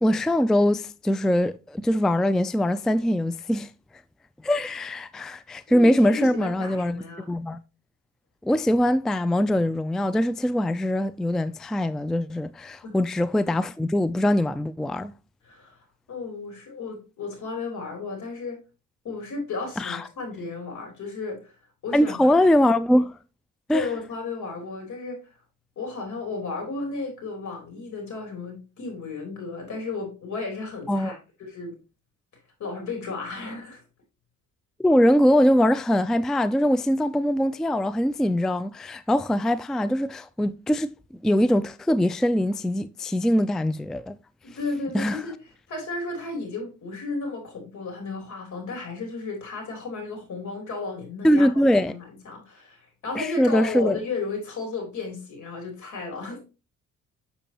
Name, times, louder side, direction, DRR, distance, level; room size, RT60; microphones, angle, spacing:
voice 1, 0.0-3.7 4.4-7.6 8.4-15.1 19.8-20.1 21.9-23.2 23.7-23.9 30.9-31.1 34.8-40.9 41.2-44.2 44.9-45.2 51.2-52.0 53.2-54.0, left 1 dB, ahead, 0.3 m, -22 dB
voice 2, 5.7-7.2 12.8-13.0 15.4-15.8 16.1-18.6 19.0-21.5 21.8-22.4 23.7-25.2 25.8-31.7 32.6-33.8 44.4-45.3 45.7-51.5 51.9-56.4, left 3 dB, 70° left, 3.4 m, -34 dB
6.9 x 6.9 x 2.9 m
cardioid pair, 90°, 30 cm